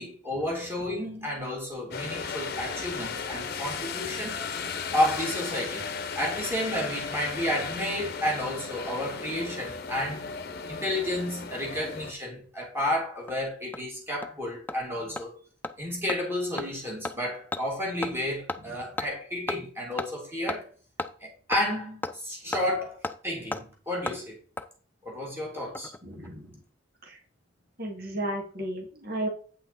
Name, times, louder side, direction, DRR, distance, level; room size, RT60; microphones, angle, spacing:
voice 1, 0.0-4.4 4.9-5.9 6.1-10.2 10.7-15.3 15.8-20.6 21.2-23.0 23.2-24.4 25.0-25.9, left 1 dB, 10° right, 3.0 m, -31 dB
sound 1, 1.9-12.1, left 5 dB, 50° left, 0.9 m, -35 dB
Hammer, 12.8-12.9 13.3-13.4 13.7-13.8 14.2-14.3 14.7-14.8 15.2-15.3 15.6-15.7 16.1-16.2 16.6-16.7 17.0-17.2 17.5-17.6 18.0-18.2 18.5-18.6 19.0-19.1 19.5-19.6 20.0-20.1 20.5-20.6 21.0-21.1 21.5-21.6 22.0-22.1 22.5-22.6 23.0-23.2 23.5-23.6 24.1-24.2 24.6-24.7 25.6-26.0 26.2-26.3, left 2 dB, 10° left, 0.4 m, -33 dB
voice 2, 26.0-26.6 27.0-27.2 27.8-29.3, right 1 dB, 50° right, 2.3 m, -34 dB
8.7 x 5.8 x 4.2 m
head